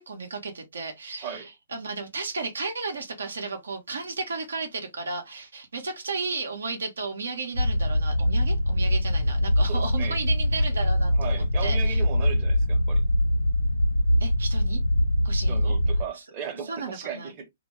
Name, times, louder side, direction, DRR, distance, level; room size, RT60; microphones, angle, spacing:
voice 1, 0.0-12.0 14.2-14.8 15.2-15.8 16.6-17.3, right 4 dB, 70° right, 0.6 m, -34 dB
sound 1, 7.5-16.0, left 1 dB, 85° left, 0.4 m, -23 dB
voice 2, 9.7-10.2 11.2-13.0 15.5-17.5, right 6 dB, 30° right, 0.7 m, -36 dB
2.1 x 2.0 x 2.9 m
figure-of-eight pair, 120°, 0 cm